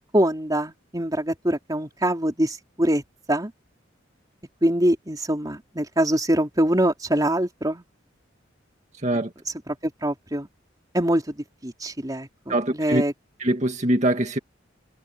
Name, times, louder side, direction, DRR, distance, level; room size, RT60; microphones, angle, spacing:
voice 1, 0.1-3.0 3.3-3.5 4.6-7.8 9.7-10.5 10.9-13.1, right 1 dB, 20° right, 3.7 m, -24 dB
voice 2, 12.5-13.0 13.4-14.4, right 1 dB, 40° right, 2.2 m, -23 dB
head